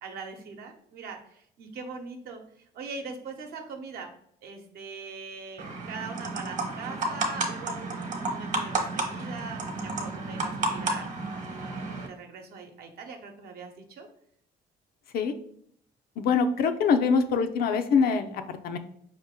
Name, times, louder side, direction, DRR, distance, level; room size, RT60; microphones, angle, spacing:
voice 1, 0.0-4.1 4.4-14.1, right 4 dB, 65° right, 4 dB, 0.9 m, -42 dB
sound 1, 5.6-12.1, right 2 dB, 45° right, 1.1 m, -32 dB
voice 2, 16.2-18.8, left 5 dB, 65° left, 8 dB, 0.5 m, -24 dB
4.8 x 2.9 x 3.6 m, 0.67 s
cardioid pair, 110°, 17 cm